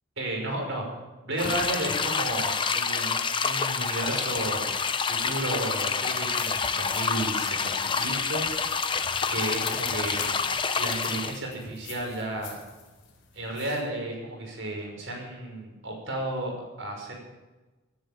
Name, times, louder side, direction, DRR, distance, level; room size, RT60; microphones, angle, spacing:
voice 1, 0.2-0.9 1.2-4.7 5.0-8.8 9.3-10.3 10.7-12.6 13.3-17.1, right 1 dB, 65° right, 1 dB, 5.9 m, -33 dB
sound 1, 1.4-11.4, left 5 dB, 25° left, 0.7 m, -28 dB
sound 2, 6.1-13.8, left 8 dB, 60° left, 4.2 m, -50 dB
sound 3, 7.2-13.4, left 5 dB, 80° left, 2.3 m, -43 dB
18.0 x 10.5 x 7.4 m, 1.2 s
head